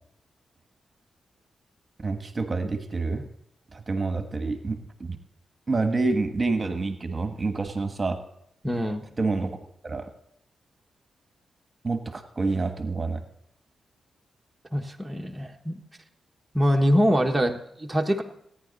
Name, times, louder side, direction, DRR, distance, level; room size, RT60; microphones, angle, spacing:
voice 1, 2.0-3.3 3.7-5.2 5.7-8.2 9.2-9.6 9.8-10.1 11.8-13.2, right 3 dB, 35° right, 7 dB, 1.3 m, -28 dB
voice 2, 8.6-9.1 14.7-15.8 16.5-18.2, equal, 10° right, 2 dB, 1.3 m, -24 dB
17.5 x 9.7 x 4.0 m, 0.74 s
cardioid pair, 60°, 0 cm